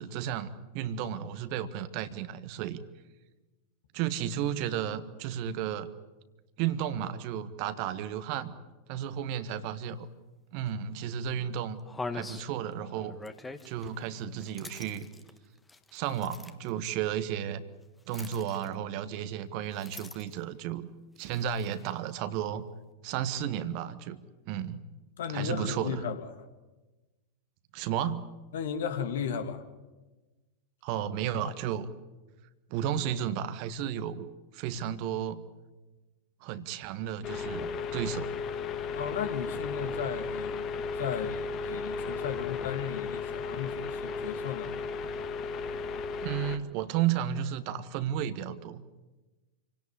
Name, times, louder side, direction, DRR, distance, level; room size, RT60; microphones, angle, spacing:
voice 1, 0.0-2.8 3.9-5.9 6.6-8.6 8.9-10.1 10.5-11.8 12.1-13.2 13.6-15.1 15.9-17.6 18.1-20.9 21.2-22.7 23.0-24.2 24.5-24.8 25.3-26.0 27.7-28.3 30.8-31.9 32.7-34.3 34.5-35.5 36.4-38.3 46.2-48.8, right 9 dB, 45° right, 1.6 m, -33 dB
sound 1, 10.7-10.8 11.3-11.4 11.8-16.7 18.1-19.0 19.7-20.5 21.2-22.0, left 3 dB, 10° left, 1.7 m, -44 dB
voice 2, 25.2-26.3 28.5-29.6 39.0-44.7, left 7 dB, 60° left, 2.5 m, -35 dB
sound 2, 37.2-46.6, left 4 dB, 35° left, 1.8 m, -35 dB
28.5 x 17.5 x 9.8 m
figure-of-eight pair, 90°, 0 cm